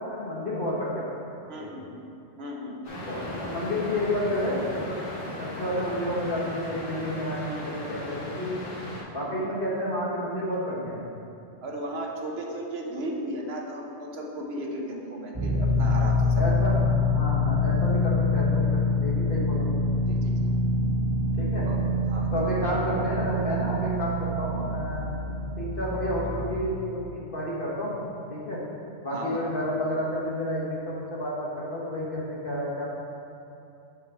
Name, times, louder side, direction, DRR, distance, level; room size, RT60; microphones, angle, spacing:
voice 1, 0.0-1.7 3.1-5.0 5.4-8.6 9.1-11.0 16.4-19.7 21.4-21.7 22.3-25.1 25.6-28.0 28.3-28.6 29.0-32.9, left 1 dB, 50° left, -5 dB, 1.5 m, -30 dB
voice 2, 1.5-2.0 2.4-2.8 11.6-16.5 20.1-20.5 21.7-21.8 22.1-22.5 29.1-29.4, right 1 dB, 65° right, 0 dB, 1.1 m, -35 dB
sound 1, 2.8-9.0, left 1 dB, 85° left, 1.9 m, -37 dB
sound 2, 15.3-26.5, left 2 dB, 30° right, 1.1 m, -25 dB
7.2 x 4.7 x 4.8 m, 2.7 s
omnidirectional pair, 1.2 m